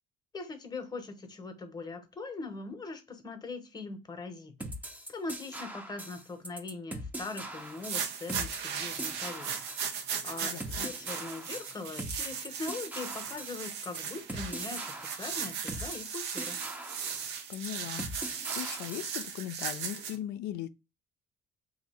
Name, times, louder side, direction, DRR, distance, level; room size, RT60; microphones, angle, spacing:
voice 1, 0.3-4.7 5.1-16.6, left 3 dB, 25° left, 0.8 m, -41 dB
sound 1, 4.6-19.2, right 1 dB, 10° right, 0.6 m, -42 dB
sound 2, 7.6-20.1, right 7 dB, 90° right, 0.7 m, -37 dB
voice 2, 10.4-10.9 17.5-18.1 18.5-20.7, left 12 dB, 80° left, 0.4 m, -39 dB
2.7 x 2.6 x 4.1 m
cardioid pair, 110°, 17 cm